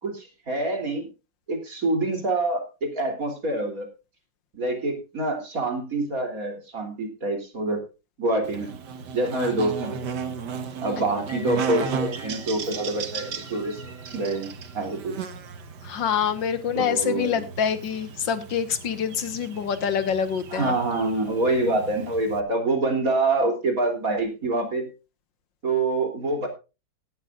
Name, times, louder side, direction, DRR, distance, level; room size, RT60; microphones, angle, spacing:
voice 1, 0.0-1.1 1.5-3.9 4.5-7.8 8.2-8.7 9.1-10.0 10.8-13.8 14.1-15.2 16.8-17.4 20.5-24.9 25.6-26.5, right 2 dB, 50° right, 4 dB, 3.7 m, -26 dB
Buzz, 8.4-22.4, right 6 dB, 70° right, 1.8 m, -35 dB
sound 1, 11.2-15.5, left 2 dB, 10° left, 3.3 m, -48 dB
voice 2, 15.8-20.7, left 7 dB, 85° left, 11 dB, 2.0 m, -26 dB
17.0 x 12.0 x 2.5 m, 0.29 s
omnidirectional pair, 1.9 m